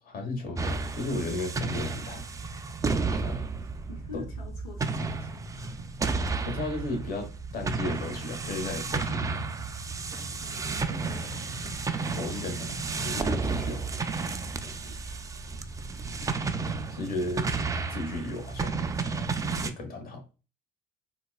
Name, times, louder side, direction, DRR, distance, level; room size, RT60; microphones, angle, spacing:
voice 1, 0.0-2.2 3.0-3.4 4.1-4.2 6.4-9.4 12.2-13.8 16.9-17.6 17.9-18.9 19.5-20.2, left 2 dB, 45° left, 3 dB, 1.2 m, -35 dB
sound 1, 0.6-19.7, right 4 dB, 15° right, 0.3 m, -32 dB
voice 2, 3.9-5.5 10.4-11.4 14.6-15.2, left 4 dB, 85° left, 1 dB, 1.0 m, -47 dB
4.0 x 2.3 x 2.3 m, 0.32 s
supercardioid pair, 85°, 20 cm